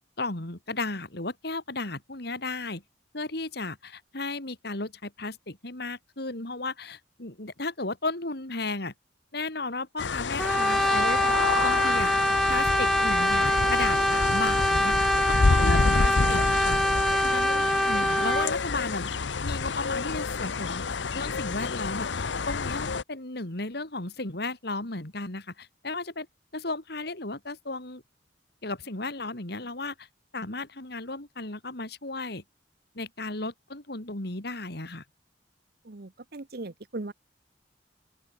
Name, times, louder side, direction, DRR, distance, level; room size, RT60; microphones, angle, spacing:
voice 1, 0.2-2.8 3.1-8.9 9.3-11.2 11.6-12.1 12.5-16.8 17.2-19.1 19.4-22.2 22.5-26.3 26.5-28.0 28.6-30.1 30.3-32.4 32.9-35.0, left 3 dB, 60° left, 3.2 m, -34 dB
sound 1, 10.0-23.0, left 4 dB, 80° left, 0.8 m, -28 dB
Brass instrument, 10.4-18.6, equal, ahead, 0.6 m, -24 dB
voice 2, 35.8-37.1, right 2 dB, 55° right, 1.0 m, -38 dB
open air
head